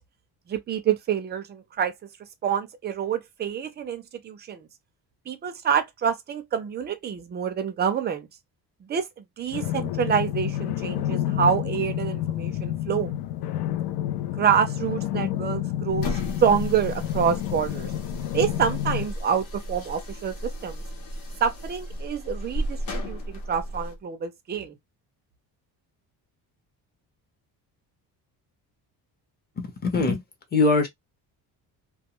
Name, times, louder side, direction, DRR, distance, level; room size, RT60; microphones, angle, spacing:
voice 1, 0.5-1.9 2.4-4.7 5.3-8.3 8.8-13.1 14.4-17.9 18.3-20.8 21.4-24.8, right 7 dB, 30° right, 0.3 m, -27 dB
sound 1, 9.5-19.1, left 12 dB, 80° left, 0.5 m, -29 dB
sound 2, 15.9-24.0, equal, 60° left, 0.9 m, -35 dB
voice 2, 29.6-30.2 30.5-30.9, left 3 dB, 25° left, 0.7 m, -22 dB
2.3 x 2.2 x 2.9 m
cardioid pair, 175°, 39 cm